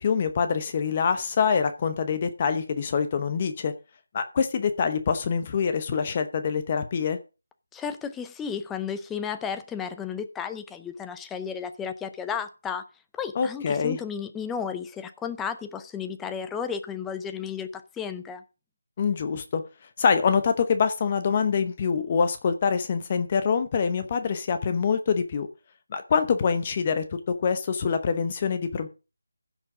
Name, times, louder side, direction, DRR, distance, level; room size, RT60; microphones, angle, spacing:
voice 1, 0.0-3.7 4.1-7.2 13.3-14.0 19.0-19.6 20.0-25.5 25.9-28.9, left 6 dB, 25° left, 0.9 m, -25 dB
voice 2, 7.7-12.8 13.1-18.4, left 7 dB, 5° left, 0.5 m, -33 dB
15.5 x 6.3 x 5.0 m
figure-of-eight pair, 170°, 0 cm